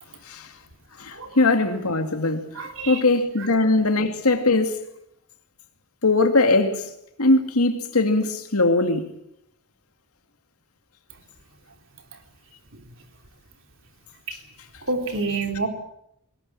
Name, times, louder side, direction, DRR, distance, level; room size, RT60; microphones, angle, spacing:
voice 1, 1.0-4.7 6.0-6.9 7.2-9.1, left 2 dB, 80° left, 2.3 m, -21 dB
voice 2, 2.5-3.0 14.3-14.4 14.9-15.7, right 3 dB, 60° right, 3.5 m, -27 dB
21.5 x 19.0 x 8.9 m
head